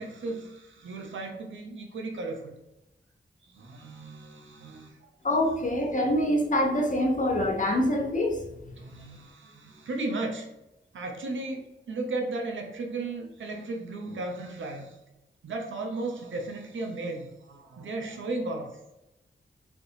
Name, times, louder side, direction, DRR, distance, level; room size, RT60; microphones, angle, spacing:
voice 1, 0.0-2.5 3.4-5.1 8.8-10.5 10.9-15.0 15.4-18.8, right 2 dB, 80° right, 3 dB, 0.6 m, -35 dB
voice 2, 5.2-8.7, left 1 dB, 40° left, 3 dB, 0.6 m, -25 dB
3.4 x 2.4 x 2.7 m, 0.91 s
cardioid pair, 40°, 20 cm